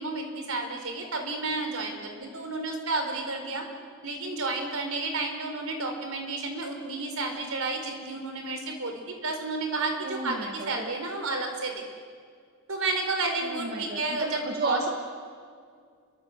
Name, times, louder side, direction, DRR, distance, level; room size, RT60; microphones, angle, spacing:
voice 1, 0.0-3.7 4.0-11.8 12.7-14.9, right 3 dB, 70° right, 4 dB, 4.8 m, -31 dB
voice 2, 10.0-10.9 13.4-14.9, right 3 dB, 45° right, 1 dB, 2.1 m, -32 dB
28.0 x 23.5 x 8.2 m, 2.1 s
head